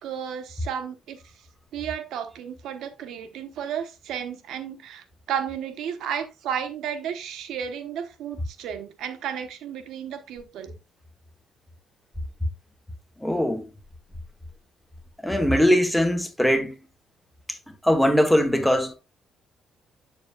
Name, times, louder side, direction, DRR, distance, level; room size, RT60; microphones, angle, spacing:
voice 1, 0.0-1.2 1.7-10.8, right 8 dB, 80° right, 1.1 m, -33 dB
voice 2, 13.2-13.6 15.2-16.8 17.8-18.9, equal, 5° left, 1.2 m, -21 dB
8.1 x 7.1 x 2.4 m
cardioid pair, 150°, 0 cm